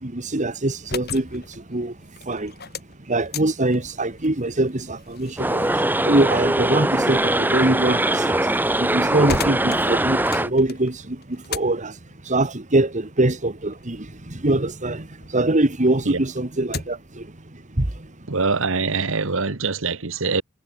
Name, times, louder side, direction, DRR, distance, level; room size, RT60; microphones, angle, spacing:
voice 1, 0.0-2.0 2.2-2.6 3.1-8.5 8.8-18.1, right 2 dB, 35° right, 1.8 m, -23 dB
sound 1, 0.7-15.4 15.8-17.2, left 4 dB, 50° left, 5.9 m, -38 dB
sound 2, 5.4-10.5, right 1 dB, 10° right, 1.7 m, -21 dB
voice 2, 18.3-20.4, right 4 dB, 65° right, 1.5 m, -24 dB
head